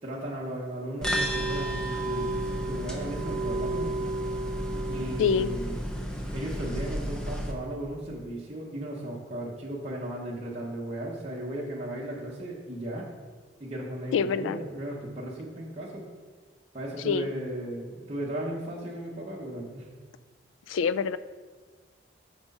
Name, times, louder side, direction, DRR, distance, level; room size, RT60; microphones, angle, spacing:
voice 1, 0.0-3.9 4.9-5.8 6.3-13.1 13.6-16.0 16.7-19.9, right 1 dB, 30° right, -5 dB, 0.9 m, -36 dB
sound 1, 1.0-7.5, right 1 dB, 5° left, 0.6 m, -31 dB
voice 2, 5.2-5.5 14.1-14.6 17.0-17.3 20.7-21.2, left 6 dB, 85° left, 15 dB, 0.3 m, -25 dB
6.1 x 5.0 x 5.4 m, 1.5 s
head